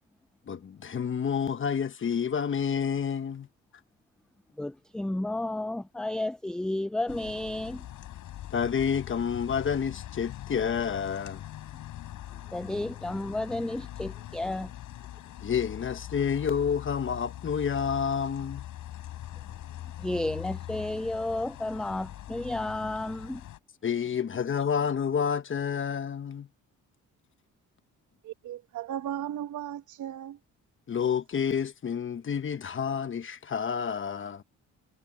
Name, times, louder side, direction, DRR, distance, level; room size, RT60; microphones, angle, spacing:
voice 1, 0.5-3.5 8.5-11.4 15.4-18.6 23.8-26.5 30.9-34.4, left 7 dB, 40° left, 1.3 m, -29 dB
voice 2, 4.6-7.9 12.5-14.7 20.0-23.4, left 1 dB, 5° left, 0.3 m, -32 dB
sound 1, 7.1-23.6, left 13 dB, 80° left, 4.4 m, -42 dB
voice 3, 28.2-30.4, right 11 dB, 75° right, 1.2 m, -36 dB
cardioid pair, 90°, 30 cm